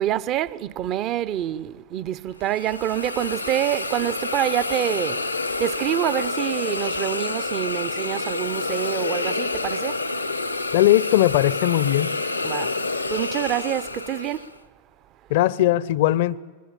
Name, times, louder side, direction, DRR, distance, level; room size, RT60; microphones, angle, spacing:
voice 1, 0.0-5.3 5.6-10.0 12.4-12.8 13.1-14.5, right 12 dB, 35° right, 0.8 m, -26 dB
Hiss, 2.4-14.5, left 3 dB, 85° left, 1.0 m, -28 dB
voice 2, 10.7-12.2 15.3-16.4, left 14 dB, 50° left, 0.7 m, -19 dB
25.0 x 21.0 x 8.8 m
figure-of-eight pair, 90°, 0 cm